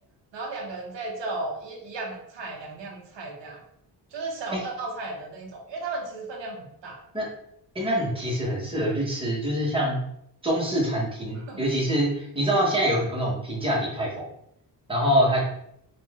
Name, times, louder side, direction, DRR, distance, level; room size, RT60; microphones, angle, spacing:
voice 1, 0.3-3.6 4.1-7.0 11.5-11.6, right 3 dB, 85° right, 0 dB, 1.0 m, -35 dB
voice 2, 7.7-10.0 10.4-14.2 14.9-15.4, equal, 10° right, -4 dB, 1.3 m, -25 dB
4.2 x 2.6 x 3.6 m, 0.73 s
wide cardioid pair, 130°, 43 cm